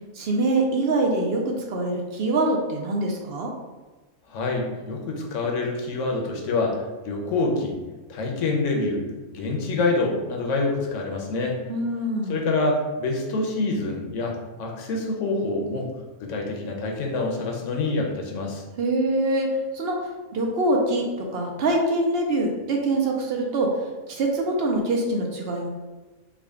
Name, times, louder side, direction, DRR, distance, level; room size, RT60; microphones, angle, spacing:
voice 1, 0.1-3.5 11.7-12.4 18.8-19.5 19.7-21.1 21.3-23.8 24.1-25.7, right 2 dB, 65° right, 0 dB, 0.7 m, -24 dB
voice 2, 4.3-7.8 8.1-9.0 9.3-11.6 12.3-15.9 16.2-18.6, left 3 dB, 85° left, 0 dB, 1.0 m, -26 dB
3.6 x 2.2 x 3.5 m, 1.2 s
omnidirectional pair, 1.2 m